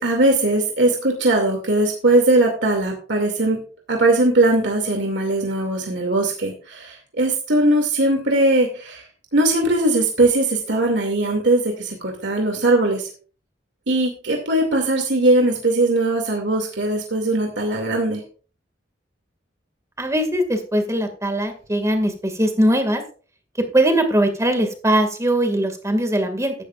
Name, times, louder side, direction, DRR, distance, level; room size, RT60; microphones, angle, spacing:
voice 1, 0.0-3.6 3.9-9.1 9.3-13.1 13.9-18.2, right 2 dB, 70° right, 2 dB, 2.5 m, -20 dB
voice 2, 20.0-23.0 23.6-26.5, right 1 dB, 15° right, 6 dB, 2.1 m, -20 dB
14.0 x 12.0 x 2.5 m, 0.39 s
head